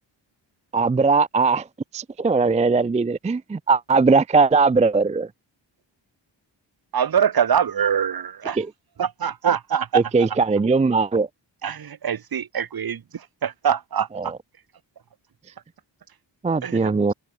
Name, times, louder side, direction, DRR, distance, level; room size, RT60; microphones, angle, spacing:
voice 1, 0.7-1.7 1.9-5.3 8.6-8.7 9.9-11.3 14.2-14.4 16.4-17.1, right 4 dB, 15° right, 0.4 m, -20 dB
voice 2, 6.9-8.6 9.0-10.0 11.6-14.3 16.6-16.9, right 8 dB, 50° right, 1.0 m, -24 dB
cardioid pair, 75°, 46 cm